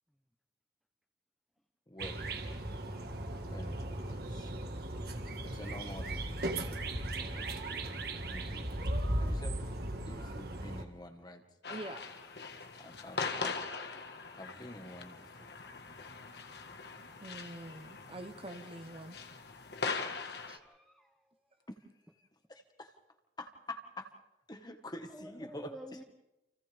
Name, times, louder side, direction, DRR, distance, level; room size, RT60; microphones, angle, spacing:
voice 1, 1.9-2.3 3.5-4.5 5.4-6.3 7.1-7.4 8.3-8.7 9.2-9.6 10.1-11.4 12.8-13.6 14.3-15.5 22.5-22.9 23.4-24.1 24.5-25.7, left 1 dB, 25° left, 6 dB, 1.7 m, -47 dB
sound 1, 2.0-10.8, right 1 dB, 60° right, 1.9 m, -37 dB
sound 2, 11.6-20.6, left 4 dB, 65° left, 1.7 m, -41 dB
voice 2, 11.7-12.1 17.2-19.2 20.5-20.6, right 1 dB, 30° right, 8 dB, 1.0 m, -45 dB
voice 3, 20.1-21.3 25.1-26.0, equal, ahead, 2 dB, 1.0 m, -51 dB
29.5 x 28.5 x 3.6 m, 0.93 s
head